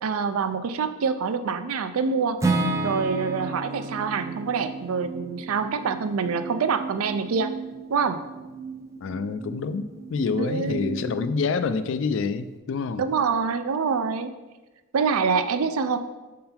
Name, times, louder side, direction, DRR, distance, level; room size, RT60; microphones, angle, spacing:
voice 1, 0.0-2.4 2.8-7.5 7.9-8.2 10.4-10.8 13.0-14.3 14.9-16.0, right 5 dB, 85° right, 10 dB, 0.4 m, -25 dB
Acoustic guitar / Strum, 2.4-6.4, right 2 dB, 15° right, 0.4 m, -30 dB
sound 1, 3.0-12.8, right 6 dB, 60° right, 1.2 m, -39 dB
voice 2, 9.0-13.1, left 5 dB, 60° left, 12 dB, 0.3 m, -27 dB
6.6 x 3.8 x 4.3 m, 1.2 s
head